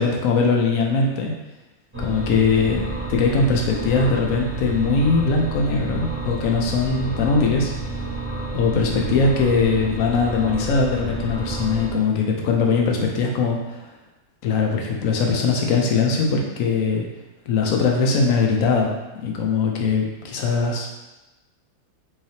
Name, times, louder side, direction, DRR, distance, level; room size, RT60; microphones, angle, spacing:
voice 1, 0.0-1.3 2.0-7.7 8.5-13.6 14.4-17.1 17.5-18.9 19.2-20.9, left 4 dB, 70° left, 0 dB, 0.9 m, -21 dB
sound 1, 1.9-11.9, right 3 dB, 10° right, 0.6 m, -30 dB
3.6 x 3.3 x 2.7 m, 1.1 s
omnidirectional pair, 1.6 m